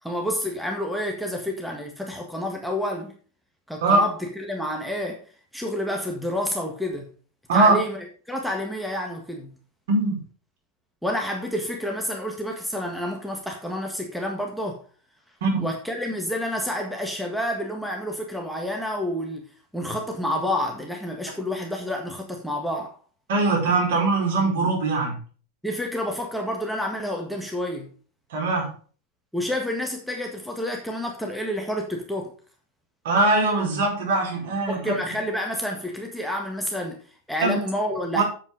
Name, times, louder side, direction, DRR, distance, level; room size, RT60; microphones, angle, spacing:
voice 1, 0.0-3.1 3.7-5.2 5.5-7.1 7.5-9.5 11.0-14.8 15.6-19.5 19.7-23.0 25.6-27.9 29.3-32.3 34.7-38.2, left 1 dB, ahead, 1 dB, 1.7 m, -29 dB
voice 2, 9.9-10.2 15.4-15.5 23.3-25.1 28.3-28.7 33.0-34.9 37.4-37.6 38.1-38.2, right 3 dB, 55° right, -1 dB, 4.6 m, -21 dB
8.2 x 7.6 x 5.1 m, 0.41 s
figure-of-eight pair, 90°, 0 cm